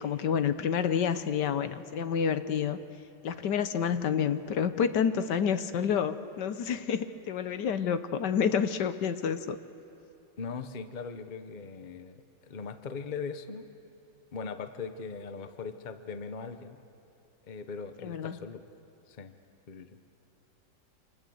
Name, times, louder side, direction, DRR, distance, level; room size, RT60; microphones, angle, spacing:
voice 1, 0.0-2.8 3.2-9.6 18.0-18.4, left 7 dB, 70° left, 11 dB, 1.5 m, -29 dB
voice 2, 10.4-13.7 14.3-16.8 17.5-18.6 19.1-19.3 19.7-20.0, left 5 dB, 35° left, 9 dB, 0.9 m, -40 dB
28.0 x 26.0 x 7.9 m, 2.7 s
omnidirectional pair, 2.0 m